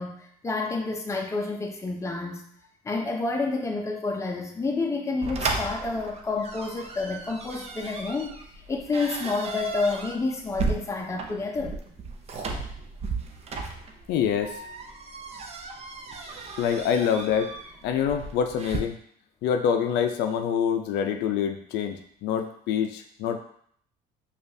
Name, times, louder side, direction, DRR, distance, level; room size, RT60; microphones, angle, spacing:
voice 1, 0.0-2.4 2.8-8.4 8.7-11.8, left 3 dB, 15° left, 1 dB, 0.6 m, -29 dB
sound 1, 5.2-18.8, right 4 dB, 40° right, 0.5 m, -35 dB
voice 2, 14.1-14.6 16.6-17.5 17.8-19.0 19.4-23.4, left 8 dB, 80° left, 6 dB, 0.4 m, -26 dB
5.1 x 2.4 x 2.6 m, 0.63 s
cardioid pair, 110°, 17 cm